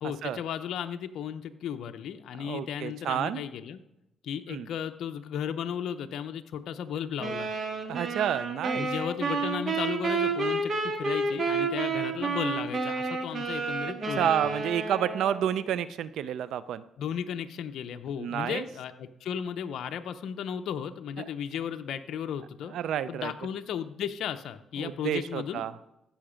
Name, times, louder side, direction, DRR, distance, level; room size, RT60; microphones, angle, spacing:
voice 1, 0.0-3.8 4.2-7.5 8.7-14.3 17.0-22.7 23.1-25.6, left 8 dB, 75° left, 7 dB, 0.6 m, -35 dB
voice 2, 2.4-3.4 4.5-4.7 7.9-8.9 14.2-16.8 18.2-18.6 22.7-23.3 24.8-25.7, right 10 dB, 75° right, 16 dB, 0.5 m, -30 dB
sound 1, 7.2-15.6, right 4 dB, 45° right, 1.8 m, -30 dB
15.5 x 5.7 x 5.1 m, 0.88 s
cardioid pair, 90°, 0 cm